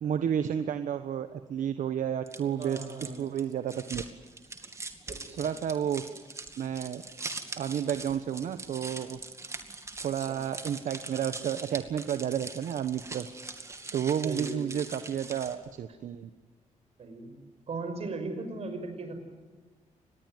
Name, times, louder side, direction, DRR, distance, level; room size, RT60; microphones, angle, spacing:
voice 1, 0.0-4.0 5.4-6.0 6.6-7.0 7.6-9.2 10.0-13.3 13.9-16.3, right 9 dB, 75° right, 10 dB, 1.2 m, -31 dB
sound 1, 2.3-15.7, right 3 dB, 20° right, 2.4 m, -42 dB
voice 2, 2.6-3.2 5.1-5.5 10.3-10.5 12.0-12.1 14.2-14.8 17.0-17.4 17.7-19.2, right 3 dB, 50° right, 7 dB, 6.0 m, -38 dB
25.5 x 20.5 x 9.5 m, 1.4 s
wide cardioid pair, 145°, 13 cm